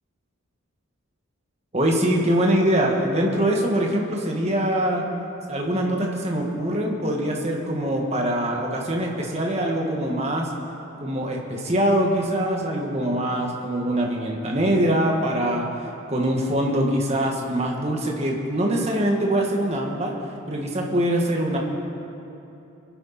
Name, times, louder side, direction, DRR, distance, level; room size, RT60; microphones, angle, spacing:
voice 1, 1.7-5.1 5.5-10.5 11.0-15.7 16.1-20.1 20.5-21.6, right 1 dB, 30° right, 0 dB, 1.7 m, -23 dB
23.0 x 11.0 x 4.2 m, 2.9 s
head